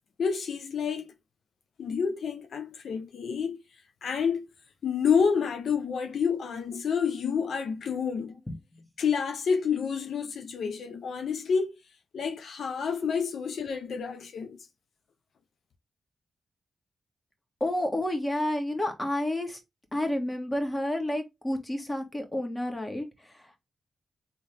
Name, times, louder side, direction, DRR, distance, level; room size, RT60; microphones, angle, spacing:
voice 1, 0.2-1.1 1.8-3.6 4.0-4.5 4.8-8.3 9.0-11.7 12.1-14.7, left 6 dB, 80° left, 0.6 m, -29 dB
voice 2, 8.5-8.8 17.6-19.6 19.9-23.6, left 1 dB, 20° left, 1.9 m, -30 dB
3.9 x 3.7 x 3.5 m
cardioid pair, 65°, 0 cm